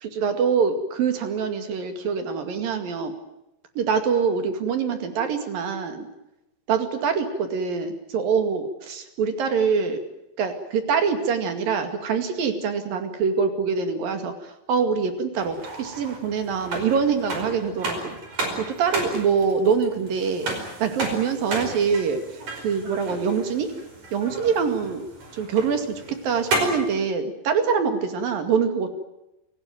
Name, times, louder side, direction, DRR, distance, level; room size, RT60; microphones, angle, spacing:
voice 1, 0.0-3.1 3.8-6.1 6.7-10.0 10.4-18.2 18.6-23.7 24.1-25.1 25.3-28.9, right 6 dB, 55° right, 7 dB, 3.5 m, -24 dB
sound 1, 15.4-26.9, right 2 dB, 40° right, 6.0 m, -33 dB
28.0 x 17.5 x 9.2 m, 0.92 s
omnidirectional pair, 5.6 m